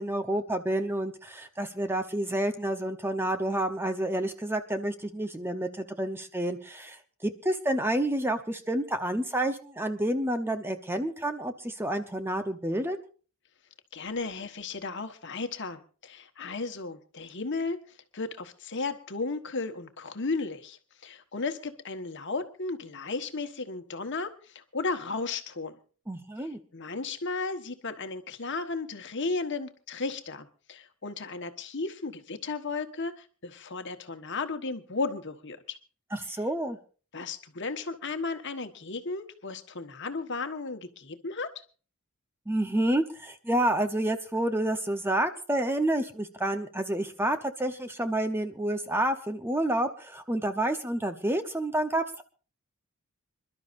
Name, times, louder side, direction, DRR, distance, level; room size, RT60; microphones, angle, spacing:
voice 1, 0.0-13.0 26.1-26.6 36.1-36.8 42.5-52.2, right 1 dB, 10° right, 8 dB, 0.9 m, -29 dB
voice 2, 13.9-17.8 18.1-25.8 26.4-35.8 37.1-41.5, left 3 dB, 55° left, 7 dB, 1.4 m, -34 dB
26.5 x 12.0 x 2.6 m, 0.38 s
head